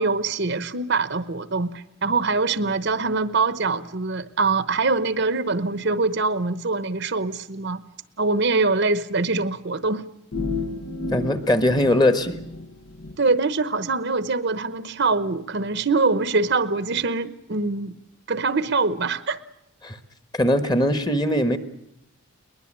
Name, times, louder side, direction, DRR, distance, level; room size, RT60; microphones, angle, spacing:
voice 1, 0.0-7.8 8.2-10.0 13.2-18.0 18.3-19.4, right 3 dB, 50° right, 14 dB, 0.9 m, -23 dB
sound 1, 10.3-13.2, left 3 dB, 75° left, 1.6 m, -32 dB
voice 2, 11.1-12.4 19.8-20.0 20.3-21.6, left 1 dB, 20° left, 10 dB, 1.3 m, -20 dB
22.0 x 20.5 x 8.8 m, 0.77 s
head